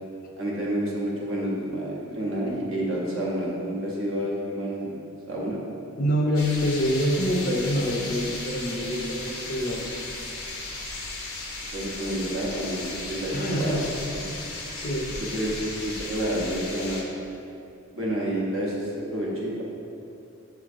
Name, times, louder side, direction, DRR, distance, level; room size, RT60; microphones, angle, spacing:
voice 1, 0.4-4.9 5.3-5.6 11.7-13.8 14.1-14.2 15.3-17.0 17.9-19.6, right 1 dB, 65° right, -4 dB, 0.9 m, -29 dB
voice 2, 6.0-10.0 13.3-13.9 14.7-15.1, equal, 40° left, -1 dB, 0.5 m, -26 dB
sound 1, 6.3-17.0, left 2 dB, 75° left, 0.7 m, -36 dB
6.8 x 3.1 x 2.5 m, 2.5 s
head